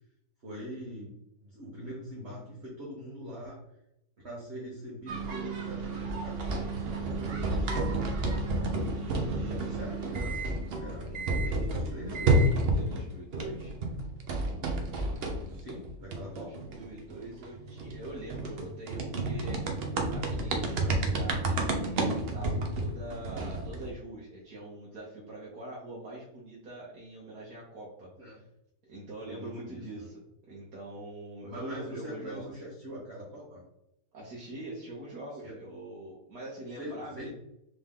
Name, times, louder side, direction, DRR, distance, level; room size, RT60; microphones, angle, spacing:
voice 1, 0.4-1.1 1.4-3.6 4.2-6.7 6.9-8.2 8.9-10.5 10.8-12.6 14.9-16.6 20.8-21.0 28.2-28.4 29.2-30.1 31.5-33.6 35.4-35.5 36.8-37.3, equal, 45° right, -5 dB, 1.1 m, -42 dB
sound 1, 5.1-13.1 13.3-23.9, right 2 dB, 90° right, 0.5 m, -31 dB
voice 2, 8.7-9.1 12.7-13.8 16.3-28.5 28.8-32.6 34.1-37.3, right 1 dB, 65° right, -5 dB, 1.4 m, -43 dB
3.7 x 3.3 x 3.6 m, 0.81 s
omnidirectional pair, 1.9 m